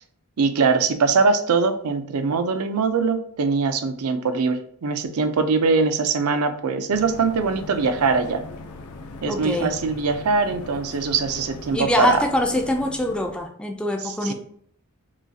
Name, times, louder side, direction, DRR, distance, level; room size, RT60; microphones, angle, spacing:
voice 1, 0.4-8.4 9.2-12.2 14.0-14.3, right 4 dB, 80° right, 8 dB, 0.5 m, -22 dB
sound 1, 6.9-13.5, left 3 dB, 80° left, 0.5 m, -39 dB
voice 2, 9.3-9.7 11.7-14.3, left 1 dB, 5° left, 3 dB, 0.4 m, -24 dB
6.0 x 2.3 x 2.7 m, 0.62 s
head